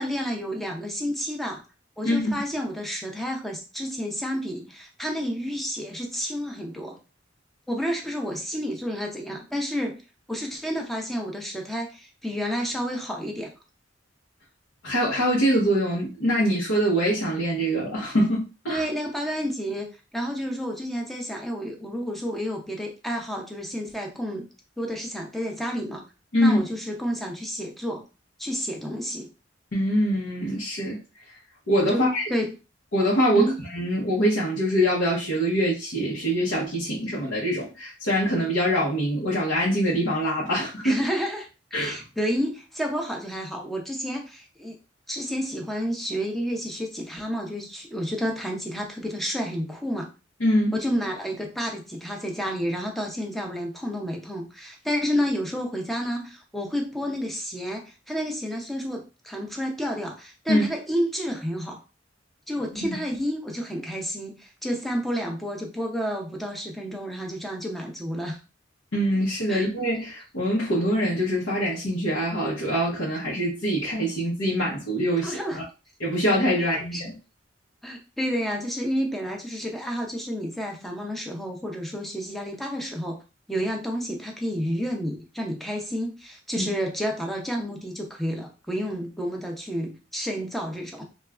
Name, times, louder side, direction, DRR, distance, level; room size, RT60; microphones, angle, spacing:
voice 1, 0.0-1.6 2.0-7.0 7.7-10.0 10.3-13.5 18.7-24.5 24.8-26.0 26.4-28.0 28.4-29.3 31.9-32.5 33.3-33.6 40.8-44.8 45.1-50.1 50.7-61.8 62.5-68.4 69.5-69.6 75.2-75.6 76.7-77.0 77.8-83.2 83.5-91.0, equal, ahead, 1 dB, 0.5 m, -30 dB
voice 2, 2.0-2.4 14.8-18.8 26.3-26.6 29.7-31.0 31.3-31.4 31.7-32.3 32.9-41.0 41.7-42.0 50.4-50.8 60.5-60.6 62.7-63.0 68.9-75.6 76.0-77.1 86.6-86.7, equal, 80° left, -5 dB, 0.9 m, -24 dB
3.2 x 2.3 x 2.4 m, 0.31 s
head